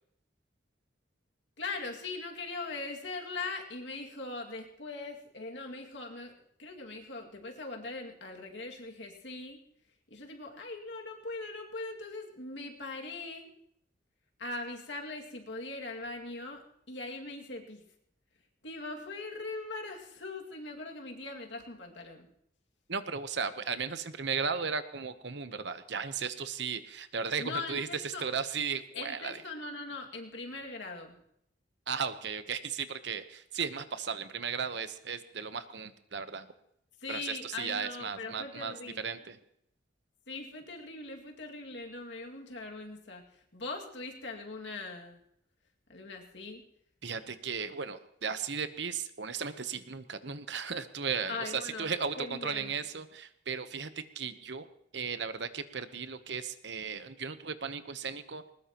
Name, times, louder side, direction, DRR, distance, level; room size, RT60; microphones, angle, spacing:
voice 1, 1.6-9.6 10.1-13.5 14.4-17.8 18.6-22.3 27.4-28.3 28.9-31.2 37.0-39.1 40.3-45.2 45.9-46.6 51.3-51.9 52.2-52.8, left 3 dB, 70° left, 2 dB, 2.3 m, -41 dB
voice 2, 22.9-29.4 31.9-36.5 37.1-39.4 47.0-54.7 54.9-58.5, right 6 dB, 65° right, 11 dB, 1.0 m, -36 dB
20.5 x 19.5 x 3.0 m, 0.73 s
head